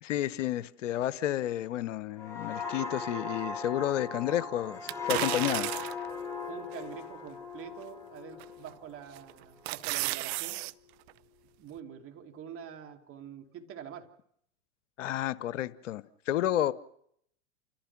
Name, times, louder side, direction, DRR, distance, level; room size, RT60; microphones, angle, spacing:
voice 1, 0.0-5.7 15.0-16.7, left 12 dB, 70° left, 1.0 m, -31 dB
sound 1, 2.2-9.6 10.0-10.3, left 4 dB, 5° left, 6.4 m, -39 dB
sound 2, 4.9-6.1 6.7-6.8 8.4-8.7 9.2-10.7 11.1-11.2, right 20 dB, 55° right, 0.7 m, -33 dB
voice 2, 6.5-10.6 11.6-14.1, right 8 dB, 35° right, 2.8 m, -45 dB
29.5 x 14.5 x 6.0 m
hypercardioid pair, 105°, 38 cm